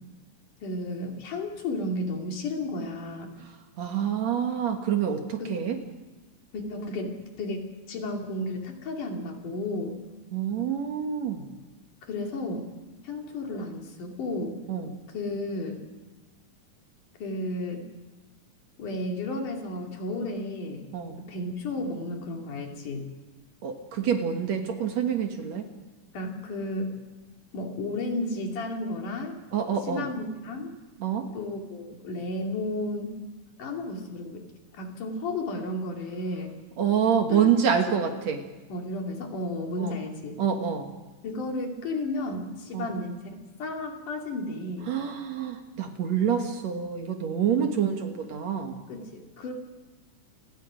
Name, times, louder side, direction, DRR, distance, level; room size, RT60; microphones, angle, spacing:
voice 1, 0.6-3.3 5.4-5.8 6.5-7.6 7.9-9.9 12.1-12.7 13.0-14.6 15.1-15.8 17.2-17.8 18.8-20.9 21.2-23.1 26.1-27.0 27.5-29.4 29.9-30.8 31.3-33.2 33.6-34.5 34.7-36.5 37.3-37.5 38.7-40.4 41.2-43.3 43.6-44.9 47.5-47.6 48.9-49.5, left 2 dB, 70° left, 1 dB, 4.2 m, -33 dB
voice 2, 3.8-5.8 10.3-11.5 14.7-15.0 20.9-21.2 23.6-25.7 29.5-30.1 31.0-31.3 36.8-38.4 39.8-39.9 40.4-40.9 42.7-42.9 44.9-48.8, right 8 dB, 60° right, 5 dB, 2.5 m, -27 dB
28.5 x 20.5 x 5.1 m, 1.2 s
omnidirectional pair, 3.8 m